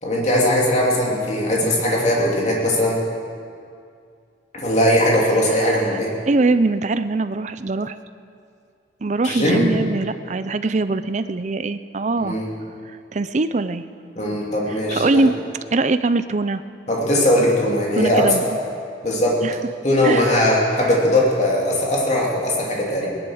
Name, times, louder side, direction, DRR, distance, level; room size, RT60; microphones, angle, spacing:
voice 1, 0.0-3.0 4.5-6.1 9.2-9.7 12.2-12.5 14.2-15.3 16.9-18.4 19.0-19.4 19.8-23.1, left 1 dB, 40° left, -3 dB, 2.7 m, -19 dB
voice 2, 5.6-6.0 6.3-8.0 9.0-12.4 13.1-13.8 14.7-15.3 15.7-16.6 17.9-18.5 19.4-19.5 20.0-20.4 20.7-20.9, right 3 dB, 40° right, 12 dB, 0.5 m, -22 dB
19.0 x 11.0 x 6.4 m, 2.3 s
head